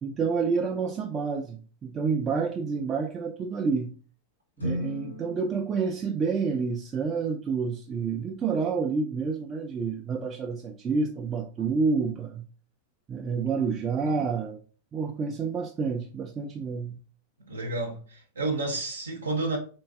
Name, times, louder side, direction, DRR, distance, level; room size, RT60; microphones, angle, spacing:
voice 1, 0.0-3.9 4.6-12.4 13.1-14.6 14.9-17.0, right 5 dB, 25° right, 0.3 m, -29 dB
sound 1, 4.6-7.0, equal, 85° left, 0.9 m, -37 dB
voice 2, 17.5-19.6, right 2 dB, 75° right, 0.6 m, -30 dB
3.8 x 2.2 x 2.3 m
figure-of-eight pair, 90°, 0 cm